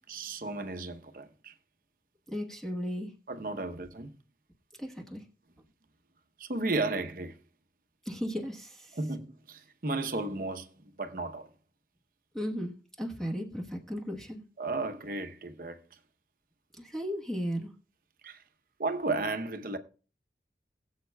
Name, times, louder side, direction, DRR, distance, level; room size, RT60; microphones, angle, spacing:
voice 1, 0.1-1.6 3.3-4.1 6.4-7.4 8.9-11.5 14.6-16.0 18.2-18.4 18.8-19.8, right 2 dB, 50° right, 0.8 m, -34 dB
voice 2, 2.3-3.1 4.8-5.2 8.0-9.0 12.3-12.7 13.0-14.4 16.7-17.7, equal, ahead, 1.1 m, -35 dB
21.0 x 7.4 x 2.2 m
head